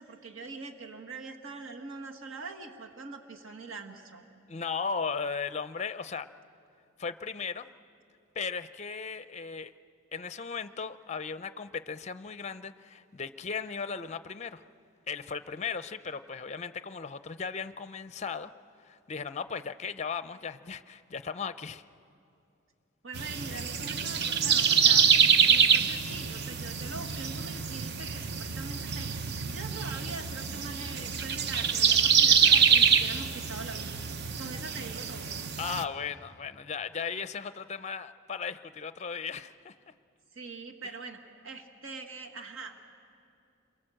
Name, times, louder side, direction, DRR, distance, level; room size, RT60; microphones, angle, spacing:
voice 1, 0.0-4.2 23.0-25.1 25.5-29.1 29.5-34.0 34.3-35.3 40.3-42.8, right 3 dB, 70° right, 3 dB, 1.6 m, -43 dB
voice 2, 4.5-6.3 7.0-7.7 8.4-9.7 10.1-14.6 15.1-18.5 18.8-21.8 35.6-39.7, left 5 dB, 30° left, 12 dB, 0.5 m, -36 dB
sound 1, 23.1-35.8, right 7 dB, 50° right, 0.8 m, -25 dB
28.0 x 23.0 x 7.7 m, 2.5 s
head